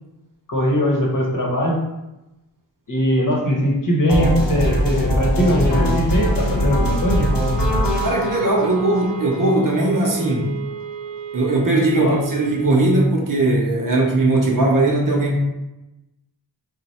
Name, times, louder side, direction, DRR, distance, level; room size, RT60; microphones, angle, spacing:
voice 1, 0.5-1.8 2.9-7.2 12.0-12.2, equal, 45° left, -2 dB, 1.0 m, -20 dB
sound 1, 4.1-10.1, equal, 70° left, 0.9 m, -21 dB
sound 2, 6.2-13.2, right 7 dB, 90° right, 0.6 m, -33 dB
voice 2, 8.0-10.5 11.3-15.4, right 2 dB, 45° right, -1 dB, 0.7 m, -19 dB
3.2 x 2.1 x 4.1 m, 0.96 s
wide cardioid pair, 75°, 44 cm